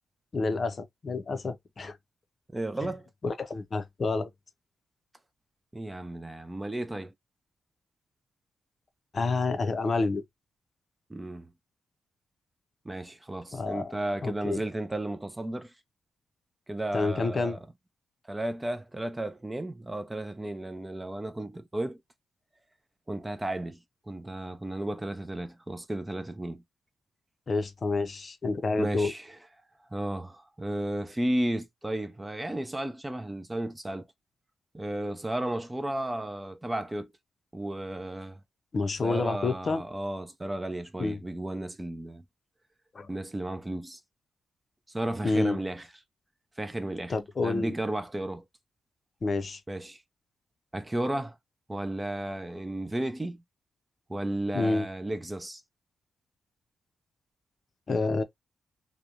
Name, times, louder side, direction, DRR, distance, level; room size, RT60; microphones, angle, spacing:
voice 1, 0.3-2.0 3.2-4.3 9.1-10.2 13.5-13.9 14.2-14.6 16.9-17.6 27.5-29.1 38.7-39.8 41.0-41.2 42.9-43.1 45.2-45.6 47.1-47.7 49.2-49.6 54.5-54.9 57.9-58.2, left 3 dB, 40° left, 0.5 m, -28 dB
voice 2, 2.5-3.1 5.7-7.1 11.1-11.5 12.9-15.7 16.7-17.6 18.3-22.0 23.1-23.8 24.1-26.6 28.8-29.4 29.9-34.1 34.7-37.1 37.5-38.4 39.0-42.2 43.1-44.0 44.9-45.9 46.6-47.2 47.4-48.4 49.7-50.0 50.7-51.4 51.7-53.4 54.1-55.6, right 1 dB, 15° right, 0.3 m, -33 dB
2.9 x 2.1 x 2.4 m
cardioid pair, 120°, 0 cm